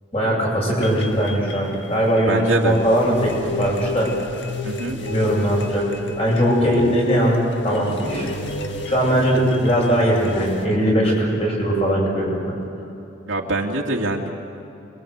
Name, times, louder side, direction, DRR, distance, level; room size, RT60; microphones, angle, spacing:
voice 1, 0.1-4.1 4.9-5.8 6.2-7.4 7.6-8.3 8.9-12.5, equal, 30° left, -2 dB, 7.9 m, -20 dB
sound 1, 0.8-10.7, left 2 dB, 65° left, 1.9 m, -32 dB
voice 2, 2.3-2.8 4.6-5.0 13.3-14.3, right 2 dB, 75° right, 0 dB, 2.5 m, -24 dB
27.5 x 23.5 x 8.2 m, 2.9 s
head